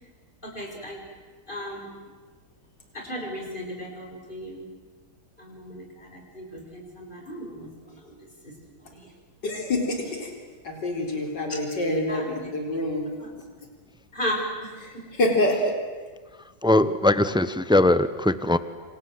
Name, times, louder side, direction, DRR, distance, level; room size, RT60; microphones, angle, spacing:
voice 1, 0.4-1.0 1.5-1.9 2.9-4.6 5.4-6.4 6.7-7.7 8.9-9.0 11.5-11.6 12.1-12.2 14.1-14.7, equal, 30° left, 1 dB, 5.9 m, -34 dB
voice 2, 9.4-10.3 10.6-13.1 14.8-15.7, left 1 dB, 90° left, 2 dB, 4.7 m, -26 dB
voice 3, 16.6-18.6, left 1 dB, 5° right, 13 dB, 0.4 m, -20 dB
27.5 x 27.0 x 7.9 m, 1.4 s
omnidirectional pair, 1.8 m